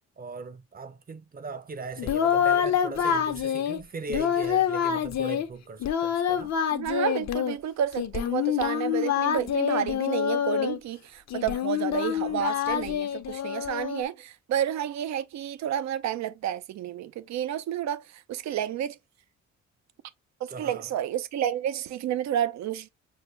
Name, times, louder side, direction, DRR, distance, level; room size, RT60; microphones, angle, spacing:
voice 1, 0.2-6.5 20.5-20.9, right 4 dB, 30° right, 0.7 m, -39 dB
Singing, 2.0-3.8 4.1-5.5 5.8-7.6 8.0-10.8 11.3-14.0, left 9 dB, 60° left, 0.9 m, -26 dB
voice 2, 6.7-19.0 20.4-22.9, right 10 dB, 65° right, 0.6 m, -30 dB
6.4 x 2.1 x 3.2 m
cardioid pair, 90°, 30 cm